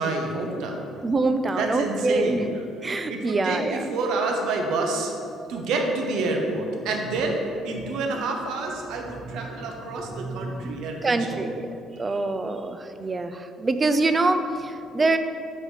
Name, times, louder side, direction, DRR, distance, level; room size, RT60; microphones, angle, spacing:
voice 1, 0.0-0.8 1.6-2.5 3.1-5.1 5.5-11.5, right 3 dB, 70° right, 1 dB, 1.0 m, -28 dB
voice 2, 1.0-2.5 2.8-4.0 10.2-15.2, right 2 dB, 20° right, 9 dB, 0.3 m, -25 dB
7.4 x 4.3 x 4.9 m, 2.5 s
cardioid pair, 165°, 0 cm